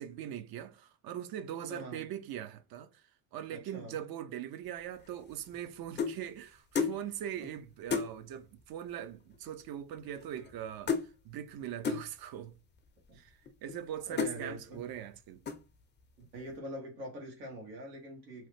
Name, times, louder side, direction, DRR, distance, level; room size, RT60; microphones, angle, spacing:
voice 1, 0.0-3.0 3.3-12.6 13.1-15.4, right 10 dB, 50° right, 0.5 m, -41 dB
voice 2, 1.7-2.0 3.5-4.0 7.4-7.5 13.1-13.2 14.1-14.9 16.2-18.5, right 1 dB, 90° right, 1.2 m, -44 dB
sound 1, 5.0-6.2 6.7-7.0 7.4-7.5 7.9-8.1 9.0-9.1 9.3-9.7 9.9-10.6 10.9-11.1 11.8-12.1 12.8-12.9 13.5-13.8 14.2-14.4 14.9-15.2 15.5-15.8, left 6 dB, 25° left, 0.5 m, -33 dB
2.9 x 2.0 x 3.2 m
hypercardioid pair, 60°, 49 cm